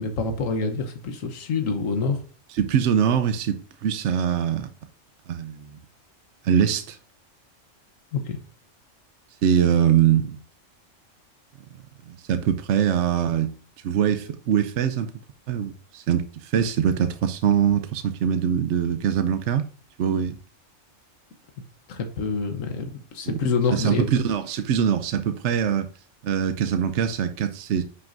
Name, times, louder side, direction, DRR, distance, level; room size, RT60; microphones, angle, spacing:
voice 1, 0.0-2.2 8.1-8.4 21.9-24.2, left 4 dB, 85° left, 1.3 m, -26 dB
voice 2, 2.5-4.7 5.3-5.7 6.4-7.0 9.4-10.4 12.1-13.5 13.8-15.1 15.5-19.7 20.0-20.4 23.3-23.4 23.7-25.9 26.2-27.8, right 8 dB, 70° right, 0.9 m, -23 dB
9.7 x 5.9 x 2.6 m
omnidirectional pair, 1.3 m